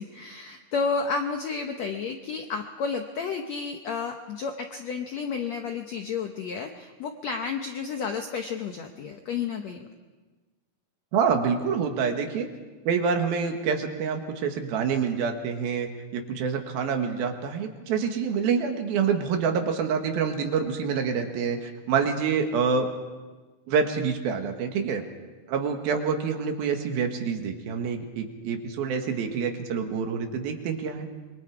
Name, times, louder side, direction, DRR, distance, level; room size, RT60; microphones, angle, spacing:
voice 1, 0.0-9.9, left 5 dB, 75° left, 4 dB, 1.6 m, -31 dB
voice 2, 11.1-12.5 12.9-22.9 23.7-25.0 25.5-31.1, right 6 dB, 75° right, 4 dB, 3.3 m, -27 dB
26.0 x 23.0 x 4.8 m, 1.3 s
omnidirectional pair, 4.4 m